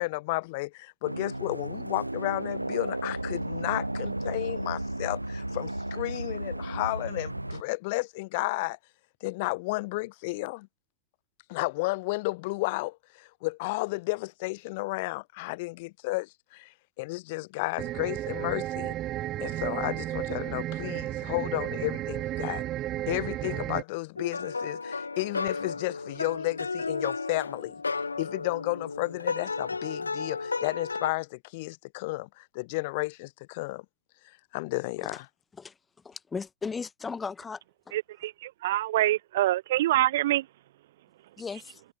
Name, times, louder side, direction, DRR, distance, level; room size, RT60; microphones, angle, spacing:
voice 1, 0.0-8.8 9.2-10.7 11.5-19.0 19.4-22.6 23.1-27.7 28.2-33.9 34.5-35.3, left 24 dB, 50° left, 1.9 m, -32 dB
sound 1, 1.0-7.6, right 1 dB, 85° right, 5.4 m, -34 dB
sound 2, 17.8-23.8, right 14 dB, 35° right, 1.3 m, -33 dB
sound 3, 24.2-31.1, left 4 dB, 80° left, 0.9 m, -33 dB
voice 2, 36.0-37.6 37.9-38.0 41.4-41.8, left 5 dB, 15° left, 2.8 m, -36 dB
voice 3, 37.9-40.5, right 15 dB, 55° right, 0.6 m, -26 dB
figure-of-eight pair, 90°, 0 cm